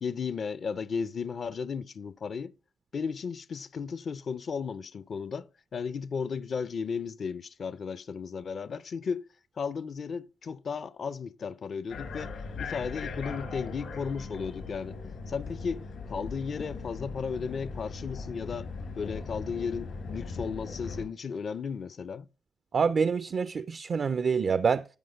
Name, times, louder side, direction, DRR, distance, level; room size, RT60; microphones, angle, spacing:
voice 1, 0.0-2.5 2.9-9.3 9.6-12.3 12.6-15.0 15.3-18.7 18.9-22.3, left 5 dB, 60° left, 0.5 m, -35 dB
sound 1, 11.9-21.0, left 4 dB, 75° left, 3.5 m, -39 dB
voice 2, 22.7-24.8, right 6 dB, 55° right, 0.4 m, -26 dB
12.0 x 5.1 x 4.9 m
supercardioid pair, 55°, 0 cm